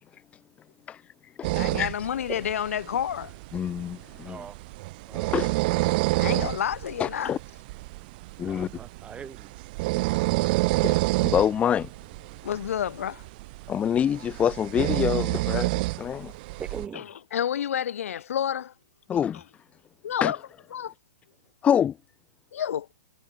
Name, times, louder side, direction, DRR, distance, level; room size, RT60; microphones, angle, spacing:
voice 1, 0.9-2.1 3.5-4.4 5.3-5.8 7.0-7.4 8.4-8.7 10.8-11.9 13.7-16.3 19.1-19.4 20.2-20.3 21.6-22.0, left 9 dB, 15° left, 1.0 m, -27 dB
sound 1, 1.4-16.9, right 22 dB, 40° right, 0.4 m, -29 dB
voice 2, 1.5-3.3 6.1-7.3 12.4-13.2 16.9-17.0 17.3-18.7 20.0-20.4 20.7-20.9 22.5-22.9, left 9 dB, 70° left, 1.1 m, -29 dB
voice 3, 4.2-4.6 5.1-5.4 8.4-9.5 16.6-17.1, right 7 dB, 15° right, 3.6 m, -41 dB
hypercardioid pair, 140°, 8 cm